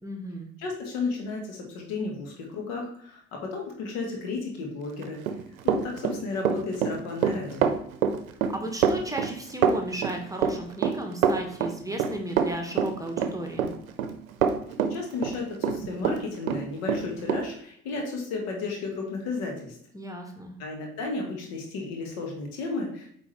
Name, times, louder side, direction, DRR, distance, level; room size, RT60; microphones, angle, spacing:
voice 1, 0.0-0.5 8.5-13.7 19.9-20.5, right 1 dB, 10° right, 3 dB, 1.2 m, -34 dB
voice 2, 0.6-5.2 5.6-7.7 14.9-19.8 20.6-23.1, left 3 dB, 65° left, 1 dB, 1.7 m, -33 dB
Run, 5.0-16.2 16.5-17.4, right 7 dB, 80° right, 0.7 m, -25 dB
8.6 x 3.8 x 3.4 m, 0.66 s
figure-of-eight pair, 55°, 41 cm